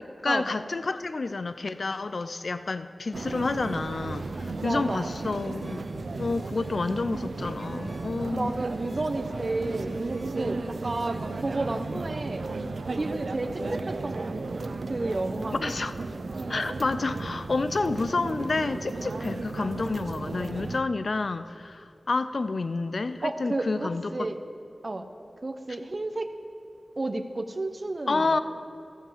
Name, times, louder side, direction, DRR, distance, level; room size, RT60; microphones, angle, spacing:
voice 1, 0.2-5.8 6.1-8.5 11.9-12.0 15.6-15.9 16.5-24.3 28.1-28.4, left 3 dB, 65° left, 12 dB, 0.4 m, -29 dB
sound 1, 3.1-11.9, left 1 dB, 30° left, 1.6 m, -49 dB
sound 2, 3.1-20.8, right 3 dB, 75° right, 0.4 m, -35 dB
voice 2, 4.6-5.1 8.3-12.4 13.0-15.6 16.3-16.6 19.1-19.4 23.2-24.4 24.8-25.1 25.4-26.3 27.0-28.4, right 2 dB, 45° right, 8 dB, 0.7 m, -32 dB
15.0 x 5.5 x 7.4 m, 2.8 s
wide cardioid pair, 65°, 0 cm